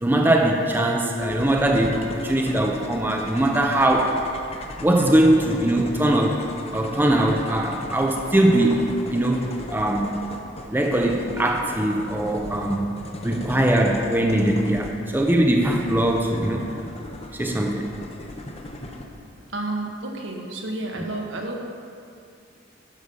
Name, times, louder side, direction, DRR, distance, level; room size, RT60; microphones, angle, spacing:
voice 1, 0.0-4.2 4.8-9.5 9.7-10.1 10.7-12.9 13.2-16.7 17.3-17.9, right 1 dB, 10° right, 2 dB, 0.5 m, -21 dB
sound 1, 1.1-19.0, left 1 dB, 30° left, 0.7 m, -37 dB
voice 2, 19.5-21.6, right 2 dB, 75° right, 1 dB, 1.2 m, -31 dB
11.5 x 5.1 x 5.4 m, 2.4 s
head